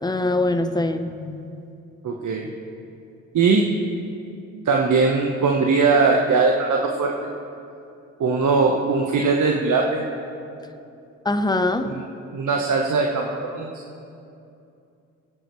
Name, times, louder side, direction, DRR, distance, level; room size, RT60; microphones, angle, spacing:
voice 1, 0.0-1.6 11.2-11.9, left 2 dB, 10° left, 8 dB, 0.9 m, -23 dB
voice 2, 2.0-2.5 3.3-3.7 4.6-7.1 8.2-10.0 11.8-12.0 12.3-13.7, right 4 dB, 50° right, 0 dB, 1.4 m, -20 dB
25.0 x 9.6 x 3.3 m, 2.6 s
hypercardioid pair, 50°, 39 cm